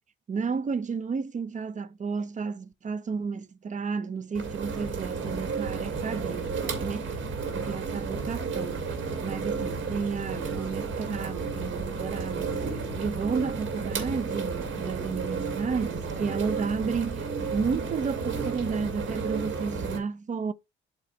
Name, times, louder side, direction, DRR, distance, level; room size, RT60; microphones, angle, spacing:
voice 1, 0.3-7.2 7.5-8.8 9.2-12.6 13.0-20.5, right 5 dB, 40° right, 0.7 m, -32 dB
sound 1, 4.3-20.0, right 4 dB, 75° right, 2.2 m, -32 dB
8.4 x 3.2 x 4.2 m
cardioid pair, 90°, 20 cm